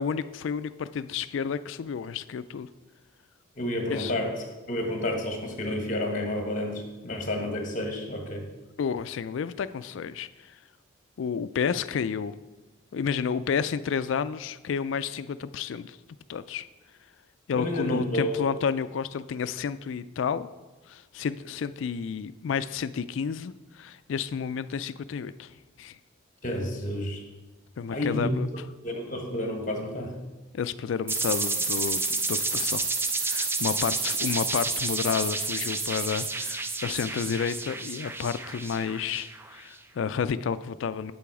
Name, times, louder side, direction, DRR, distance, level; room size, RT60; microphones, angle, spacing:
voice 1, 0.0-2.7 3.9-4.1 8.8-10.6 11.2-12.3 12.9-16.0 16.3-16.7 17.5-20.5 20.9-26.0 27.8-28.5 30.5-32.9 33.2-41.1, left 6 dB, 65° left, 14 dB, 0.3 m, -31 dB
voice 2, 3.6-4.3 4.7-8.5 17.5-18.5 26.4-27.2 27.9-28.3 28.8-30.2, left 1 dB, 40° left, 3 dB, 1.4 m, -30 dB
sound 1, 31.1-39.6, right 3 dB, 10° right, 0.3 m, -30 dB
7.6 x 7.0 x 4.8 m, 1.2 s
head